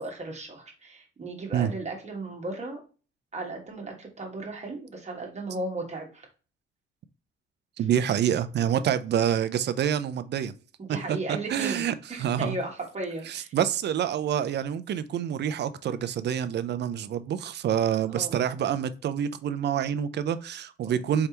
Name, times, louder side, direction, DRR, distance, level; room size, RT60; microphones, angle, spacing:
voice 1, 0.0-2.8 3.3-6.3 10.8-13.5 18.1-18.4 20.8-21.0, right 2 dB, 35° right, 1.4 m, -36 dB
voice 2, 7.8-10.5 11.1-12.6 13.3-21.3, right 9 dB, 60° right, 0.5 m, -27 dB
4.7 x 3.3 x 2.9 m
cardioid pair, 90°, 20 cm